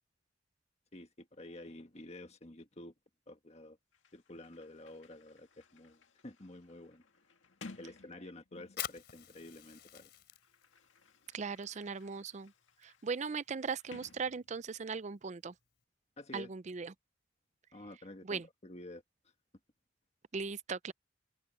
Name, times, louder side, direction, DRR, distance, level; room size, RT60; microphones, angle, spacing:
voice 1, 0.9-2.9 3.3-3.8 4.1-7.0 7.8-10.1 16.2-16.5 17.7-19.0, left 1 dB, 35° left, 1.6 m, -50 dB
Sliding door, 3.9-9.0 9.9-14.9, left 3 dB, 85° left, 2.0 m, -58 dB
Fire, 8.6-15.8, left 10 dB, 60° left, 4.0 m, -50 dB
voice 2, 11.3-12.5 12.8-15.5 16.3-16.9 18.2-18.5 20.3-20.9, right 5 dB, 40° right, 0.5 m, -38 dB
open air
head